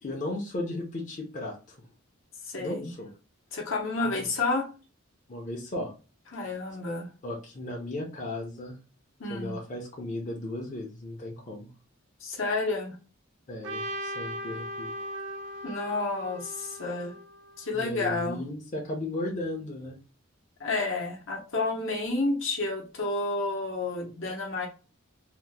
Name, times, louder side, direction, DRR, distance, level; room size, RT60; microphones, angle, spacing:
voice 1, 0.0-1.9 2.6-3.1 4.0-4.2 5.3-5.9 7.2-8.8 9.3-11.7 13.5-14.9 17.7-20.0, left 1 dB, 35° left, 0.6 m, -35 dB
voice 2, 2.4-2.9 3.5-4.7 6.3-7.1 9.2-9.6 12.2-13.0 15.6-17.2 17.6-18.4 20.6-24.7, left 3 dB, 70° left, 0.8 m, -30 dB
Trumpet, 13.6-17.8, equal, 60° right, 0.4 m, -38 dB
2.8 x 2.1 x 3.4 m
head